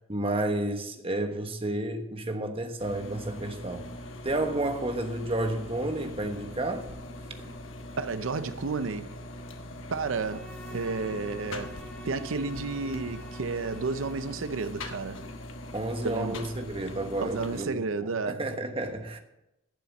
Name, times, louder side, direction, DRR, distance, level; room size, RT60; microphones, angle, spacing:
voice 1, 0.1-3.9 4.2-6.9 15.7-19.2, right 1 dB, 30° right, 1.2 m, -31 dB
sound 1, 2.8-17.6, left 1 dB, 80° left, 1.4 m, -42 dB
voice 2, 8.0-9.2 9.9-11.8 12.0-15.3 16.0-16.4 17.2-18.5, right 4 dB, 90° right, 0.6 m, -32 dB
Bowed string instrument, 9.9-14.7, equal, 5° left, 1.4 m, -49 dB
11.5 x 7.0 x 7.2 m
head